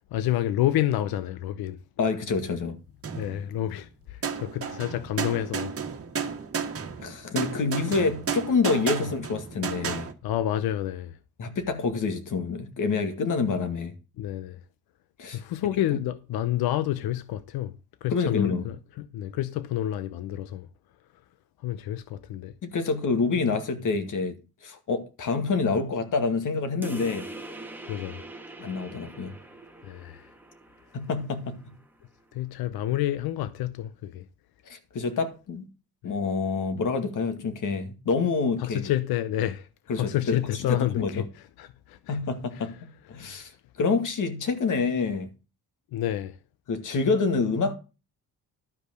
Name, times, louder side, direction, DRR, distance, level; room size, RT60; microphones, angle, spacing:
voice 1, 0.1-1.8 3.2-5.7 10.2-11.2 14.2-14.6 15.3-17.7 18.0-20.7 21.6-22.5 27.9-28.2 29.8-30.3 32.3-34.3 36.0-36.1 38.6-39.7 40.0-41.3 41.6-42.2 42.5-42.7 43.1-43.4 45.9-46.4, left 13 dB, 85° left, 0.7 m, -29 dB
voice 2, 2.0-2.8 7.0-10.1 11.4-13.9 15.2-15.4 18.1-18.7 22.6-24.4 24.6-27.3 28.6-29.3 30.9-31.6 34.7-35.7 36.0-38.8 39.9-41.2 42.1-43.5 43.8-45.3 46.7-47.7, left 4 dB, 60° left, 2.2 m, -27 dB
sound 1, 3.0-3.8 4.2-10.1, right 6 dB, 40° right, 1.6 m, -33 dB
sound 2, 26.8-31.9, right 1 dB, 5° right, 1.4 m, -43 dB
12.0 x 5.2 x 6.5 m
cardioid pair, 105°, 36 cm